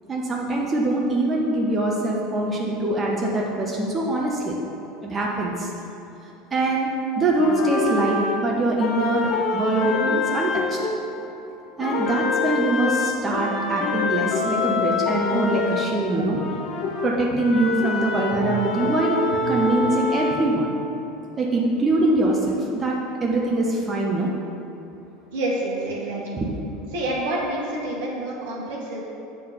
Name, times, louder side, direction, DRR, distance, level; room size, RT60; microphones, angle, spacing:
voice 1, 0.1-4.6 5.0-5.7 6.5-6.9 7.2-10.8 11.8-16.4 17.0-19.2 19.5-20.7 21.4-22.9 23.2-24.3 26.3-26.5, right 2 dB, 25° right, -2 dB, 1.0 m, -23 dB
sound 1, 7.4-11.5 11.8-20.4, left 4 dB, 50° left, 1.0 m, -26 dB
voice 2, 25.3-26.4 26.9-29.0, right 1 dB, 65° right, -3 dB, 1.5 m, -28 dB
7.7 x 3.8 x 6.6 m, 2.9 s
figure-of-eight pair, 75°, 0 cm